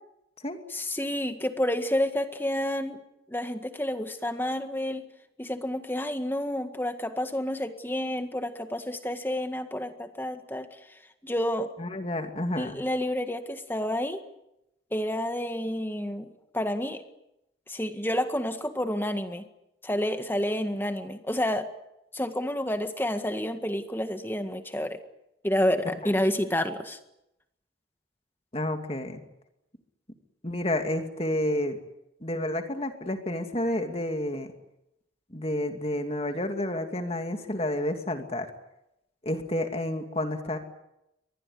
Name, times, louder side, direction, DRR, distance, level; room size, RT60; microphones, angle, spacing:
voice 1, 0.7-3.0 3.3-5.0 5.4-11.7 12.6-14.2 14.9-17.0 17.7-19.5 19.8-21.7 22.1-25.0 25.4-27.0, left 1 dB, 10° left, 8 dB, 1.8 m, -29 dB
voice 2, 11.8-12.8 26.0-26.1 28.5-29.2 30.4-31.8 32.2-34.5 35.3-38.5 39.2-40.6, left 1 dB, 30° left, 6 dB, 2.6 m, -30 dB
24.5 x 20.0 x 9.8 m, 0.85 s
head